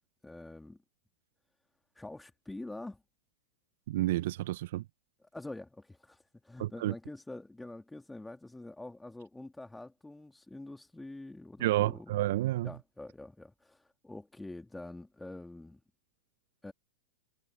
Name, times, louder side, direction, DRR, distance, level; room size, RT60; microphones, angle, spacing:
voice 1, 0.2-0.8 1.9-3.0 5.2-12.2 12.6-15.8 16.6-16.7, left 2 dB, 5° left, 2.7 m, -46 dB
voice 2, 3.9-4.8 6.6-6.9 11.6-12.7, right 16 dB, 60° right, 1.5 m, -30 dB
figure-of-eight pair, 95°, 0 cm